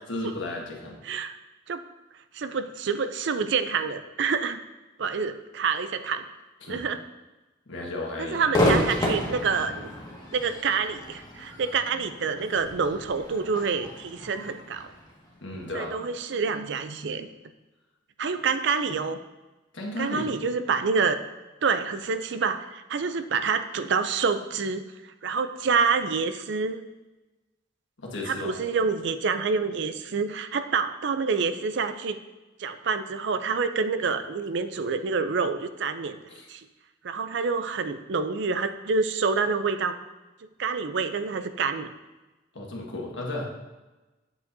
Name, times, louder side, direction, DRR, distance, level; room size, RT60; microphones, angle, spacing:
voice 1, 0.1-1.0 6.6-6.8 7.7-9.2 15.4-15.9 19.7-20.3 28.0-28.5 36.3-36.5 42.5-43.4, left 2 dB, 85° left, -2 dB, 1.6 m, -34 dB
voice 2, 1.0-1.4 1.7-1.8 2.3-4.6 5.0-6.2 6.7-7.0 8.2-9.9 10.3-14.9 15.7-17.3 18.2-19.2 20.0-21.2 21.6-26.8 28.3-32.2 32.6-36.2 36.5-36.7 37.0-40.0 40.6-41.9, right 5 dB, 65° right, 10 dB, 0.5 m, -27 dB
Crowd / Fireworks, 8.5-15.8, left 1 dB, 20° left, 1.7 m, -30 dB
8.2 x 7.9 x 2.7 m, 1.1 s
head